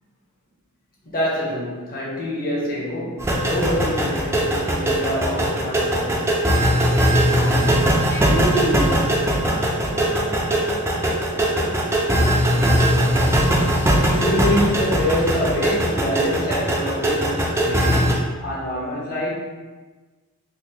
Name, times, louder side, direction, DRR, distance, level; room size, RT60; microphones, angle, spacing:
voice 1, 1.0-6.3 14.1-19.3, left 1 dB, 45° left, -5 dB, 0.9 m, -26 dB
sound 1, 3.2-18.1, right 1 dB, 10° right, 0.4 m, -20 dB
voice 2, 7.2-7.7 8.1-11.8 12.1-12.8, right 2 dB, 80° left, -8 dB, 1.4 m, -31 dB
3.8 x 2.5 x 2.8 m, 1.3 s
head